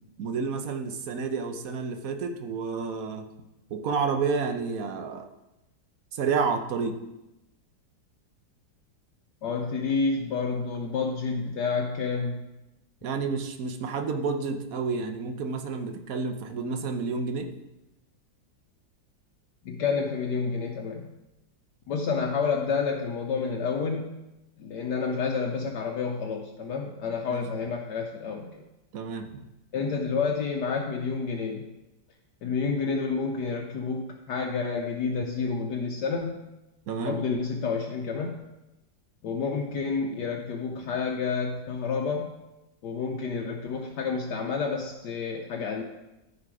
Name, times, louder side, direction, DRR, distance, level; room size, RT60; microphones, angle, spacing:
voice 1, 0.2-3.2 3.7-5.3 6.1-7.0 13.0-17.5 27.3-27.4 28.9-29.3 36.9-37.2, right 5 dB, 55° right, 6 dB, 1.1 m, -30 dB
voice 2, 9.4-12.4 19.6-21.1 21.9-24.2 24.6-28.6 29.7-31.7 32.4-36.4 37.0-38.4 39.2-42.3 42.8-45.8, left 5 dB, 70° left, 1 dB, 1.3 m, -29 dB
13.5 x 5.1 x 4.9 m, 0.96 s
omnidirectional pair, 2.0 m